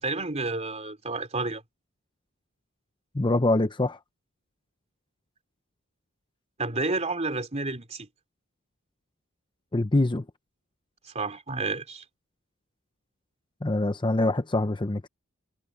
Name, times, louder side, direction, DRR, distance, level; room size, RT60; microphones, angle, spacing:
voice 1, 0.0-1.6 6.6-8.1 11.0-12.0, right 3 dB, 30° right, 3.5 m, -30 dB
voice 2, 3.1-4.0 9.7-10.2 13.6-15.1, left 2 dB, 20° left, 0.7 m, -24 dB
head